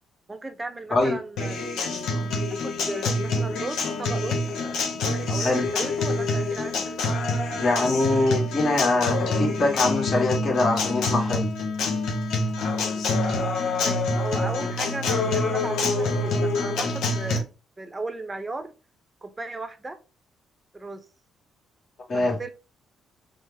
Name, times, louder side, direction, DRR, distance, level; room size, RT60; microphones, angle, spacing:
voice 1, 0.3-2.1 2.5-4.5 5.3-7.0 13.8-17.5 17.8-18.7 19.2-20.0 20.7-21.1 22.1-22.5, right 3 dB, 20° right, 0.7 m, -36 dB
Acoustic guitar, 1.4-17.4, left 2 dB, 80° left, 0.9 m, -26 dB
voice 2, 7.5-11.5 22.1-22.3, left 2 dB, 45° left, 1.5 m, -23 dB
5.4 x 2.0 x 3.4 m
cardioid pair, 80°, 0 cm